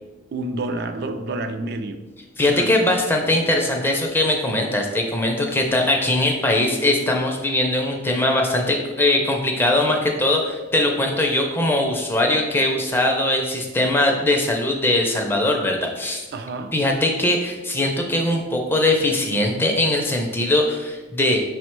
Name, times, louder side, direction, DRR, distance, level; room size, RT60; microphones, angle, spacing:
voice 1, 0.3-2.1 2.5-2.7 16.3-16.8, right 2 dB, 55° right, 8 dB, 0.4 m, -29 dB
voice 2, 2.4-16.2 16.7-21.4, left 1 dB, 10° left, 1 dB, 0.4 m, -21 dB
5.1 x 2.1 x 4.4 m, 1.1 s
head